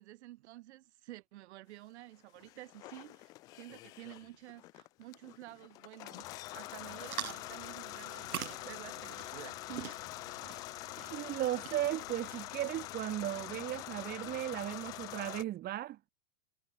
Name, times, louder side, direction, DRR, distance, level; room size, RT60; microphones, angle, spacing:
voice 1, 0.0-9.9, right 16 dB, 55° right, 7.6 m, -51 dB
sound 1, 2.4-15.4, left 19 dB, 10° left, 0.4 m, -45 dB
sound 2, 7.0-13.3, right 10 dB, 85° right, 6.4 m, -46 dB
voice 2, 11.1-16.0, right 14 dB, 25° right, 3.5 m, -36 dB
supercardioid pair, 160°, 41 cm